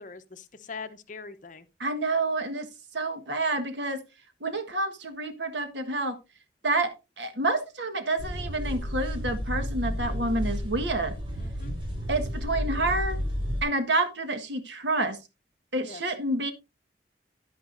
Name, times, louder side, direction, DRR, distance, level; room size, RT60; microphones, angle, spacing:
voice 1, 0.0-1.7 11.4-11.7 15.8-16.0, left 4 dB, 45° left, 0.9 m, -42 dB
voice 2, 1.8-2.7 2.9-4.0 4.4-6.2 6.6-11.1 12.1-13.2 13.6-15.2 15.7-16.5, right 2 dB, 85° right, 1.6 m, -28 dB
sound 1, 8.2-13.6, equal, 30° right, 3.7 m, -31 dB
11.0 x 10.0 x 2.6 m
head